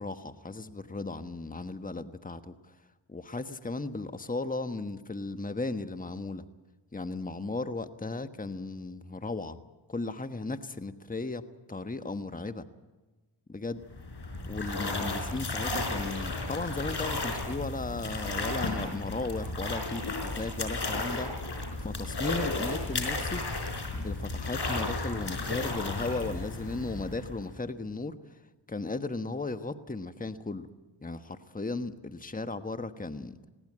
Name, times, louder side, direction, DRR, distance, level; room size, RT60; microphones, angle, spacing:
voice 1, 0.0-2.7 3.1-6.4 6.9-9.6 9.9-12.6 13.5-13.8 14.5-21.3 21.8-23.4 23.9-28.4 28.7-30.7 31.0-33.4, left 3 dB, 20° left, 9 dB, 1.3 m, -36 dB
sound 1, 13.8-27.6, left 2 dB, 60° left, 5.0 m, -34 dB
20.5 x 17.5 x 8.7 m, 1.2 s
cardioid pair, 45°, 46 cm